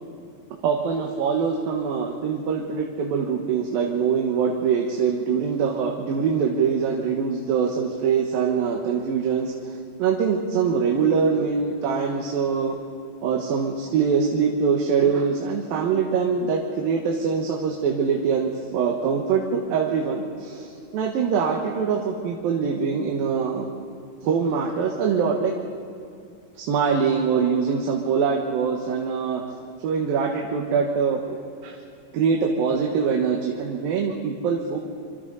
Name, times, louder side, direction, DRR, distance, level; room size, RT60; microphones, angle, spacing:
voice 1, 0.6-9.7 10.0-12.8 13.2-23.7 24.2-25.5 26.6-29.4 29.8-31.8 32.1-34.8, right 6 dB, 75° right, 1 dB, 3.1 m, -23 dB
26.0 x 25.5 x 4.1 m, 2.6 s
omnidirectional pair, 4.3 m